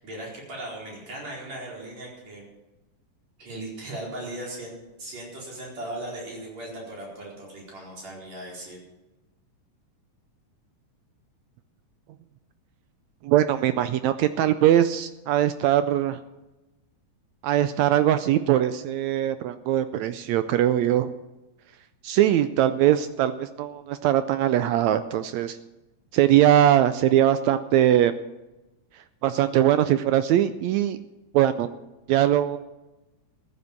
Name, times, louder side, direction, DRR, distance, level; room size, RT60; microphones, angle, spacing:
voice 1, 0.0-2.4 3.4-8.8, right 1 dB, 55° right, -3 dB, 5.8 m, -38 dB
voice 2, 13.2-16.2 17.4-21.1 22.0-25.6 26.1-28.1 29.2-31.0 31.3-31.7 32.1-32.6, right 12 dB, 80° right, 11 dB, 1.6 m, -21 dB
14.5 x 9.6 x 7.1 m, 1.0 s
omnidirectional pair, 3.7 m